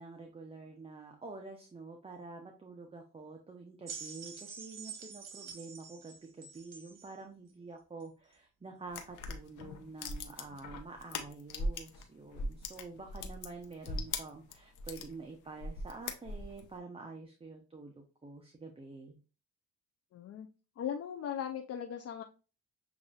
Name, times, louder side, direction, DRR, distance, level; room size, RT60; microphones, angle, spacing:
voice 1, 0.0-19.2, right 3 dB, 20° right, 2 dB, 0.7 m, -48 dB
sound 1, 3.9-7.1 8.0-8.1, right 6 dB, 60° right, 1.2 m, -47 dB
sound 2, 8.9-12.0 12.3-15.1 15.6-16.7, left 2 dB, 80° left, 0.8 m, -39 dB
voice 2, 20.1-20.5 20.8-22.2, left 8 dB, 55° left, 4 dB, 0.5 m, -38 dB
7.0 x 2.6 x 2.4 m, 0.34 s
cardioid pair, 90°, 30 cm